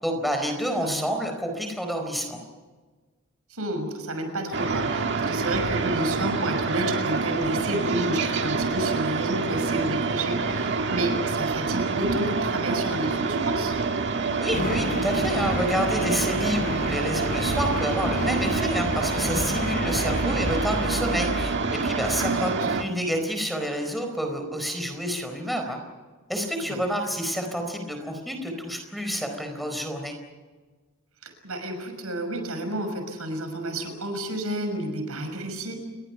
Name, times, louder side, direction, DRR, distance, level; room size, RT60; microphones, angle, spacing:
voice 1, 0.0-2.4 14.4-25.8 26.3-30.1, equal, ahead, 5 dB, 4.4 m, -29 dB
voice 2, 0.7-1.1 3.5-13.7 22.2-22.7 26.6-26.8 31.2-35.7, right 1 dB, 80° right, 6 dB, 6.1 m, -30 dB
sound 1, 4.5-22.8, right 4 dB, 55° right, 1.8 m, -27 dB
sound 2, 14.5-21.5, left 2 dB, 40° left, 1.1 m, -32 dB
30.0 x 22.0 x 5.9 m, 1.3 s
head